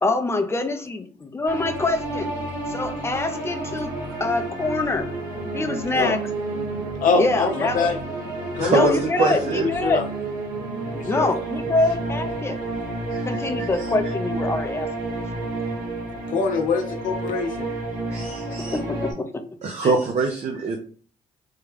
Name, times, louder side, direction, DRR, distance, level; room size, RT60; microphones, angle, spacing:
voice 1, 0.0-2.3 2.7-3.9 4.2-5.1 5.5-6.2 7.2-7.9 8.7-9.4 9.7-10.1 11.1-12.6 13.3-14.9 18.7-19.4 19.8-19.9, left 2 dB, 15° left, 7 dB, 0.5 m, -25 dB
sound 1, 1.5-19.1, right 2 dB, 75° right, 1.2 m, -30 dB
voice 2, 7.0-8.0 8.6-9.0 9.3-10.0 10.9-11.3 16.3-17.7, left 4 dB, 65° left, 3 dB, 0.6 m, -24 dB
voice 3, 8.6-9.7 13.1-13.9 18.1-18.8 19.6-20.8, right 4 dB, 50° right, 2 dB, 0.6 m, -24 dB
3.6 x 2.2 x 3.3 m, 0.42 s
cardioid pair, 80°, 15 cm